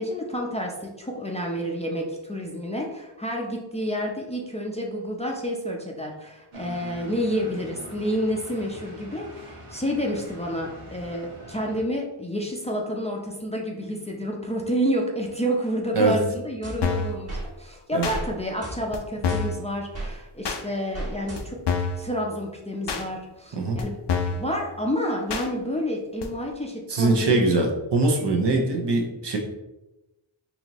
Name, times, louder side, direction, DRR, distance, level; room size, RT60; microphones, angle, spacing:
voice 1, 0.0-21.6 22.0-24.0 24.3-27.6, equal, 15° left, -1 dB, 0.6 m, -29 dB
sound 1, 6.5-11.8, right 1 dB, 85° right, 1.0 m, -43 dB
sound 2, 16.6-17.5 18.1-18.3 18.6-20.1 20.9-21.8, right 2 dB, 30° right, 1.3 m, -36 dB
sound 3, 16.8-17.2 18.0-18.2 18.9-19.0 19.2-19.6 20.4-20.6 21.4-21.5 21.7-22.0 22.9-23.0 23.8-23.9 24.1-24.4 25.3-25.5 26.2-26.3, left 5 dB, 55° left, 0.6 m, -26 dB
voice 2, 26.9-29.4, right 3 dB, 55° right, 2 dB, 0.8 m, -22 dB
4.1 x 2.7 x 3.0 m, 0.97 s
cardioid pair, 55°, 49 cm